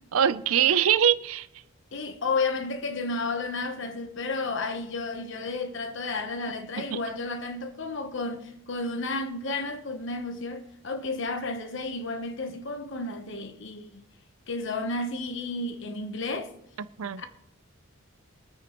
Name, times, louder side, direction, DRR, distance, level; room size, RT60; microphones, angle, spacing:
voice 1, 0.1-1.5 6.8-7.0 16.8-17.2, right 9 dB, 80° right, 0.5 m, -23 dB
voice 2, 1.9-14.0 14.5-16.5 17.2-17.3, left 3 dB, 60° left, 1.1 m, -32 dB
23.5 x 9.4 x 3.1 m
head